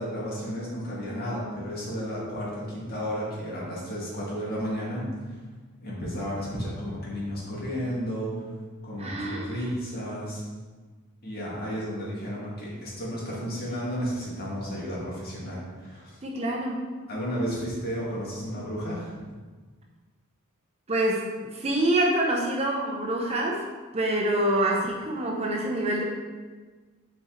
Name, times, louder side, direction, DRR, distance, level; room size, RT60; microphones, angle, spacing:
voice 1, 0.0-5.0 5.8-8.3 8.8-10.4 11.2-16.2 17.1-19.2, equal, 45° left, -6 dB, 2.1 m, -33 dB
voice 2, 9.0-9.6 16.2-16.9 20.9-23.7 23.9-26.0, right 1 dB, 30° right, 0 dB, 0.7 m, -26 dB
7.1 x 4.3 x 3.9 m, 1.4 s
head